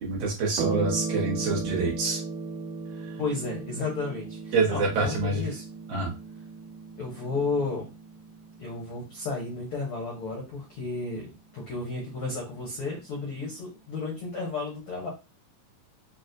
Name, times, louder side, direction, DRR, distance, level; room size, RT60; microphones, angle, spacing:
voice 1, 0.0-2.2 4.5-5.4 5.9-6.1, right 3 dB, 60° right, -3 dB, 2.3 m, -26 dB
sound 1, 0.6-9.4, right 4 dB, 85° right, 1.8 m, -36 dB
voice 2, 3.2-5.6 7.0-7.9 8.6-15.1, left 3 dB, 75° left, -2 dB, 1.3 m, -33 dB
6.0 x 2.4 x 2.6 m, 0.28 s
omnidirectional pair, 4.2 m